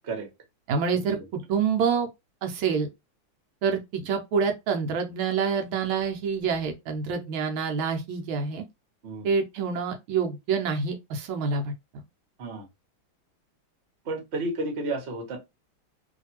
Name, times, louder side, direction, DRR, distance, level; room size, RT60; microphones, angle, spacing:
voice 1, 0.7-1.2 1.5-2.1 2.4-2.9 3.6-8.6 9.2-12.0, right 5 dB, 80° right, 1.5 m, -27 dB
voice 2, 14.1-15.4, right 2 dB, 40° right, 1.0 m, -31 dB
3.2 x 2.7 x 2.8 m
omnidirectional pair, 2.3 m